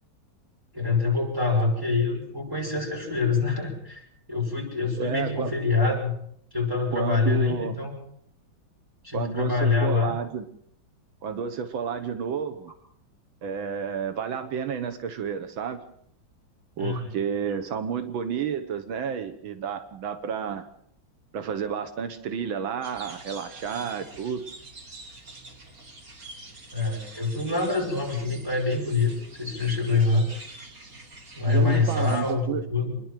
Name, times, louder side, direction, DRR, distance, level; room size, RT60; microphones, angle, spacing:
voice 1, 0.7-6.1 6.5-7.9 9.0-10.2 16.8-17.2 26.7-30.3 31.3-33.0, left 4 dB, 10° right, -2 dB, 7.2 m, -25 dB
voice 2, 5.0-5.5 6.9-7.8 9.1-10.5 11.2-12.7 13.4-15.8 16.8-20.7 21.3-24.5 31.5-32.6, right 7 dB, 85° right, 9 dB, 2.0 m, -31 dB
sound 1, 22.8-32.3, right 2 dB, 45° right, 3.1 m, -45 dB
26.5 x 11.0 x 9.1 m, 0.68 s
omnidirectional pair, 2.1 m